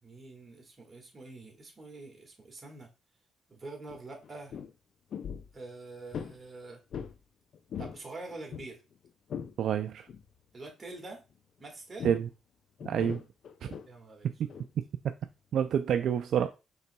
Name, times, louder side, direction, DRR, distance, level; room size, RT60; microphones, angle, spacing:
voice 1, 0.0-2.9 3.5-4.6 5.5-6.8 7.8-8.8 10.5-11.2 11.6-12.1 13.8-14.6, right 2 dB, 30° right, 1.7 m, -46 dB
sound 1, 3.9-4.0 4.2-4.7 5.1-5.5 6.1-6.4 6.9-7.2 7.5-8.0 8.3-9.5 10.1-10.3 12.0-12.3 12.8-13.9 14.5-14.7, left 7 dB, 60° left, 0.4 m, -40 dB
voice 2, 9.6-10.1 12.0-12.3 12.8-13.2 13.6-13.7 14.8-15.1 15.5-16.5, right 9 dB, 70° right, 0.3 m, -28 dB
5.4 x 3.8 x 2.2 m
cardioid pair, 90°, 0 cm